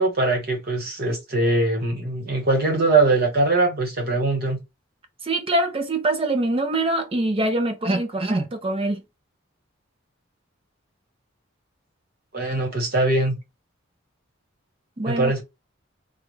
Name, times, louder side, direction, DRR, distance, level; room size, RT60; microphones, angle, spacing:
voice 1, 0.0-4.6 12.3-13.4 15.0-15.4, right 2 dB, 50° right, 1.3 m, -21 dB
voice 2, 5.2-9.0 15.0-15.3, right 2 dB, 25° right, 0.5 m, -24 dB
3.4 x 2.2 x 3.1 m
head